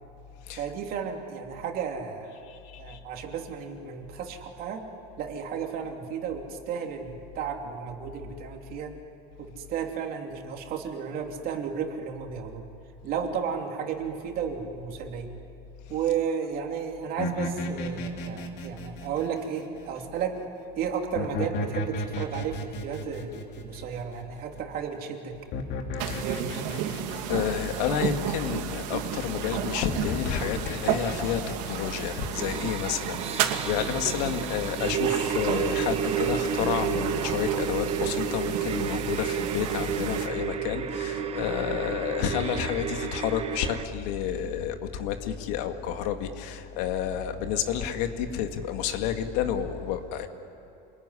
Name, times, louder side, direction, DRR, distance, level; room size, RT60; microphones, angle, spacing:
voice 1, 0.5-2.4 2.8-4.8 5.2-8.9 9.4-12.7 13.0-15.3 15.9-20.4 20.8-25.3 25.9-26.8, right 7 dB, 45° right, 2 dB, 3.0 m, -33 dB
voice 2, 2.5-3.0 26.1-26.2 27.3-31.4 31.7-50.3, left 9 dB, 75° left, 6 dB, 2.1 m, -30 dB
sound 1, 17.2-20.0 21.1-24.6 25.5-28.2 29.9-31.7, left 2 dB, 50° left, 2.8 m, -34 dB
sound 2, 26.0-40.3, right 9 dB, 80° right, 2.5 m, -33 dB
sound 3, 32.1-43.8, right 8 dB, 30° right, 1.2 m, -31 dB
27.5 x 21.5 x 10.0 m, 2.7 s
cardioid pair, 155°, 21 cm